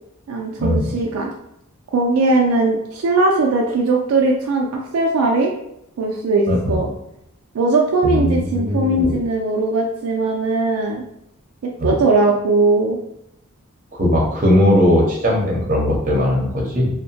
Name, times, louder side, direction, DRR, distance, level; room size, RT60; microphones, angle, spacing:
voice 1, 0.3-1.3 1.9-5.5 6.0-6.9 7.5-11.0 11.6-13.0, right 3 dB, 75° right, 0 dB, 0.4 m, -19 dB
voice 2, 6.5-6.8 8.0-9.1 11.8-11.9 13.9-16.9, left 1 dB, 40° right, -3 dB, 0.7 m, -18 dB
2.7 x 2.1 x 2.7 m, 0.78 s
head